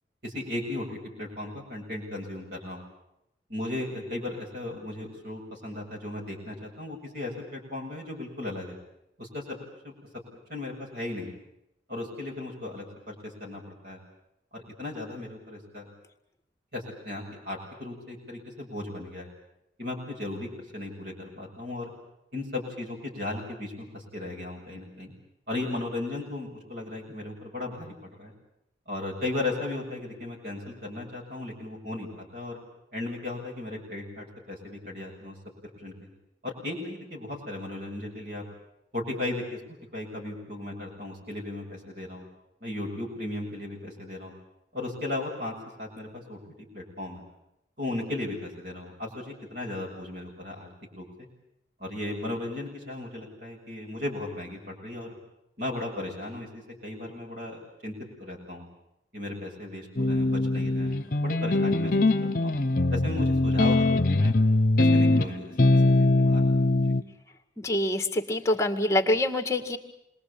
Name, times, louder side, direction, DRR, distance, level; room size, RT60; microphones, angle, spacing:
voice 1, 0.2-2.8 3.5-8.8 9.2-9.6 9.8-9.9 10.5-11.3 11.9-14.0 14.5-15.9 16.7-19.3 19.8-21.9 22.3-25.1 25.5-28.3 28.9-32.6 32.9-35.4 35.8-35.9 36.4-38.4 38.9-42.2 42.6-44.3 44.7-46.4 46.7-47.2 47.8-51.3 51.8-55.1 55.6-57.9 58.2-58.6 59.1-62.6 62.9-64.3 64.8-66.4 66.8-66.9, left 2 dB, 60° right, -1 dB, 7.6 m, -36 dB
sound 1, 60.0-67.0, left 2 dB, 50° left, 1.0 m, -22 dB
voice 2, 67.6-69.8, left 1 dB, 15° left, 6 dB, 2.0 m, -25 dB
28.0 x 22.0 x 8.7 m, 0.83 s
head